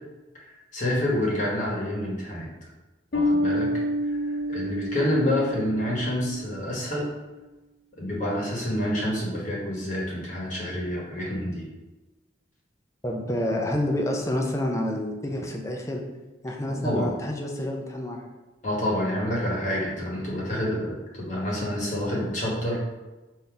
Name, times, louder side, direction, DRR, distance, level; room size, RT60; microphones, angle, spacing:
voice 1, 0.3-2.5 3.1-3.7 4.0-7.1 8.0-11.6 16.7-17.1 18.6-22.8, left 1 dB, 45° left, -4 dB, 1.1 m, -28 dB
Bass guitar, 3.1-6.6, left 1 dB, 60° left, 0.7 m, -28 dB
voice 2, 13.0-16.0 16.4-18.2, left 1 dB, 15° left, 1 dB, 0.5 m, -28 dB
3.8 x 2.7 x 4.6 m, 1.1 s
head